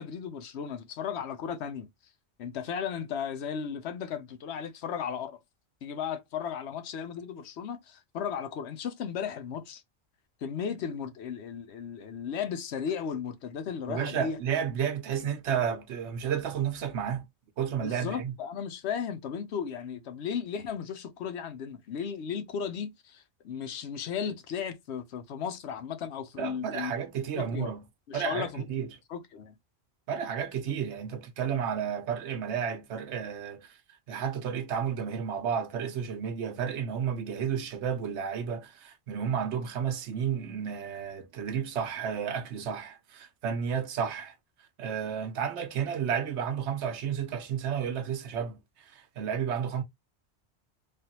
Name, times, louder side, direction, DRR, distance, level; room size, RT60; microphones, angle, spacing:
voice 1, 0.0-1.9 2.4-5.4 5.8-9.8 10.4-14.4 17.8-26.9 27.3-27.7 28.1-28.6 29.1-29.5, left 7 dB, 75° left, 0.9 m, -35 dB
voice 2, 13.9-17.2 17.6-18.3 26.4-27.8 28.1-28.9 30.1-33.8 34.1-44.3 44.8-49.8, right 7 dB, 80° right, 1.0 m, -32 dB
3.4 x 2.4 x 2.8 m
omnidirectional pair, 1.1 m